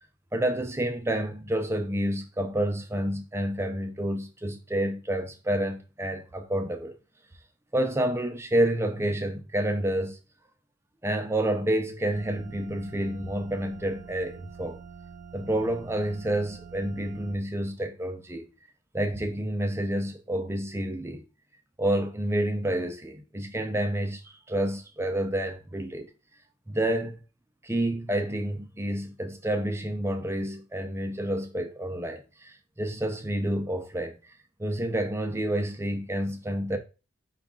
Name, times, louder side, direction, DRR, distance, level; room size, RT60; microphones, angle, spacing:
voice 1, 0.3-6.9 7.7-10.2 11.0-14.8 15.3-18.5 18.9-21.2 21.8-26.1 26.7-27.2 27.6-34.2 34.6-36.8, right 1 dB, 10° right, 0.5 m, -29 dB
sound 1, 12.1-17.3, right 6 dB, 45° right, 0.9 m, -46 dB
5.1 x 2.4 x 3.6 m
head